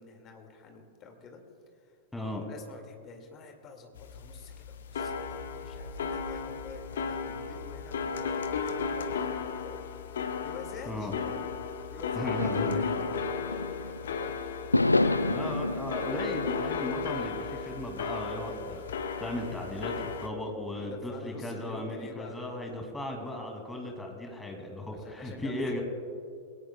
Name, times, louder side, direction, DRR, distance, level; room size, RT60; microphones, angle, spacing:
voice 1, 0.0-1.4 1.8-2.0 2.4-11.2 11.9-14.7 20.7-22.5 24.9-25.8, left 5 dB, 30° left, 4 dB, 2.1 m, -48 dB
voice 2, 2.1-2.4 10.9-11.1 12.1-12.8 15.2-18.8 19.2-25.8, left 1 dB, 5° left, 2 dB, 2.5 m, -36 dB
sound 1, 3.9-20.3, left 5 dB, 65° left, 0.9 m, -35 dB
sound 2, 12.4-14.1 14.7-17.0, left 2 dB, 85° left, 0.4 m, -29 dB
21.5 x 17.5 x 2.3 m, 2.4 s
figure-of-eight pair, 90°, 0 cm